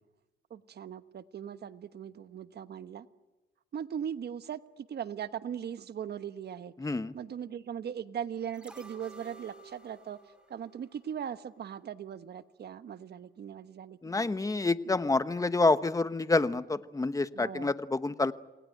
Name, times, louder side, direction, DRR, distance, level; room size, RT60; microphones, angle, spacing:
voice 1, 0.5-3.1 3.7-6.7 7.1-10.2 10.5-14.3 17.3-17.7, right 8 dB, 55° right, 12 dB, 1.2 m, -39 dB
voice 2, 6.8-7.1 14.0-18.3, left 3 dB, 15° left, 12 dB, 1.1 m, -28 dB
sound 1, 8.5-11.7 12.0-12.1, right 3 dB, 5° right, 4.9 m, -53 dB
28.0 x 19.5 x 9.3 m, 1.1 s
cardioid pair, 90°, 20 cm